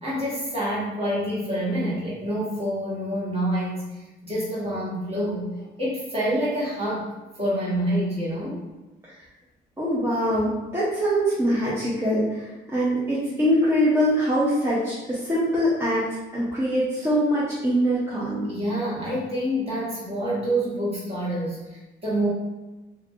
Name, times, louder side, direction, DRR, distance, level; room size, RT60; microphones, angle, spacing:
voice 1, 0.0-3.9 4.2-7.1 7.4-8.6 18.5-22.3, equal, 30° right, -7 dB, 1.5 m, -27 dB
voice 2, 9.8-16.1 16.3-18.5, equal, 15° right, -9 dB, 0.8 m, -23 dB
2.8 x 2.6 x 2.7 m, 1.1 s
cardioid pair, 90°, 20 cm